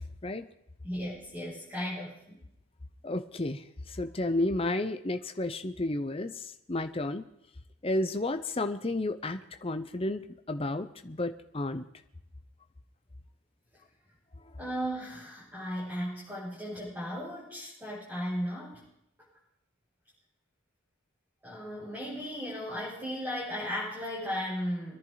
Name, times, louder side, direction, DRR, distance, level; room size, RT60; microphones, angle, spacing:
voice 1, 0.8-2.4 14.6-18.8 21.4-25.0, equal, 10° right, -10 dB, 6.8 m, -36 dB
voice 2, 3.0-3.6 3.9-6.4 6.7-7.2 7.8-11.8, left 2 dB, 25° left, 8 dB, 0.7 m, -32 dB
24.5 x 11.0 x 4.0 m, 0.80 s
head